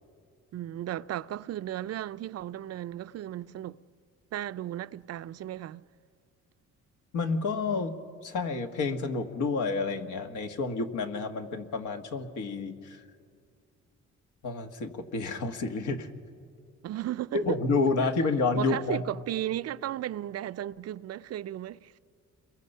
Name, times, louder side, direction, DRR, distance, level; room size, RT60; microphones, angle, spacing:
voice 1, 0.5-3.8 4.3-5.8 16.8-17.4 18.6-21.9, right 12 dB, 55° right, 0.5 m, -35 dB
voice 2, 7.1-8.0 8.2-13.0 14.4-16.1 17.3-19.0, left 3 dB, 80° left, 1.8 m, -29 dB
29.5 x 22.5 x 5.6 m
cardioid pair, 90°, 30 cm